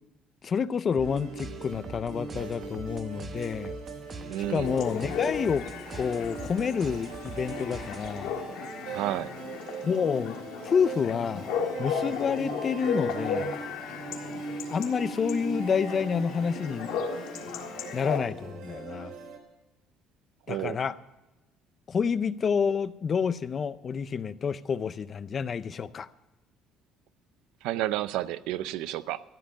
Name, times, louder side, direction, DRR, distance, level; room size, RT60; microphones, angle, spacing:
voice 1, 0.4-3.8 4.5-5.7 5.9-8.3 9.8-10.4 10.6-11.5 11.8-13.5 14.7-16.9 17.9-19.1 20.5-21.0 21.9-26.1, left 6 dB, 30° left, 15 dB, 0.5 m, -29 dB
sound 1, 0.9-8.4, right 3 dB, 25° right, 0.9 m, -44 dB
sound 2, 1.0-19.4, right 3 dB, 65° right, 3.1 m, -40 dB
voice 2, 4.3-4.8 8.9-9.3 20.5-20.8 27.6-29.2, right 14 dB, 90° right, 15 dB, 0.5 m, -31 dB
Chatter / Bark / Livestock farm animals working animals, 4.6-18.2, left 6 dB, 90° left, 1.7 m, -35 dB
13.5 x 7.5 x 9.9 m, 1.0 s
cardioid pair, 155°, 0 cm